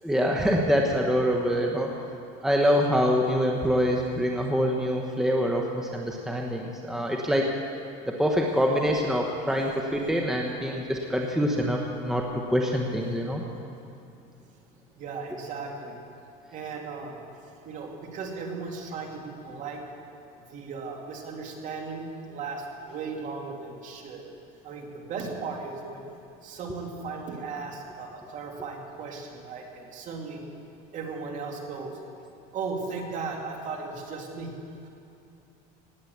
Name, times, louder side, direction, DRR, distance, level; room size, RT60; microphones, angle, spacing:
voice 1, 0.0-1.9 2.4-7.5 8.1-13.4, equal, ahead, 0 dB, 1.0 m, -25 dB
voice 2, 15.0-16.0 16.5-17.2 17.6-19.8 20.5-24.2 24.6-26.1 26.4-30.4 30.9-32.0 32.5-34.5 34.8-34.9, right 4 dB, 40° right, 1 dB, 2.4 m, -36 dB
17.5 x 8.8 x 8.1 m, 2.6 s
cardioid pair, 140°, 19 cm